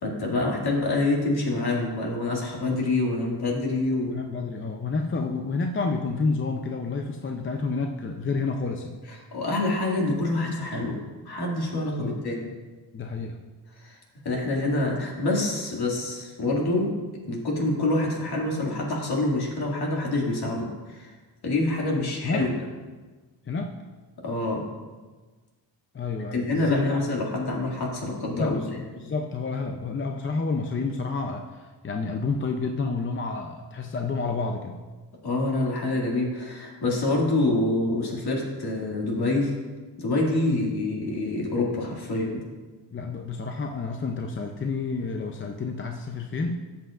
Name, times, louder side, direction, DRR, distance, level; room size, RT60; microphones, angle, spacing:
voice 1, 0.0-4.1 9.3-11.0 11.3-12.4 13.8-14.0 14.2-17.0 17.3-21.1 21.4-22.5 24.2-24.6 26.3-28.6 35.2-39.5 40.0-42.4, left 2 dB, 55° left, -2 dB, 2.4 m, -26 dB
voice 2, 4.0-9.0 12.0-12.2 12.9-13.4 22.2-22.5 23.5-23.7 25.9-27.0 28.4-34.8 40.5-40.8 42.9-46.6, left 4 dB, 25° left, 3 dB, 0.6 m, -29 dB
13.0 x 7.9 x 2.5 m, 1.3 s
cardioid pair, 95°, 45 cm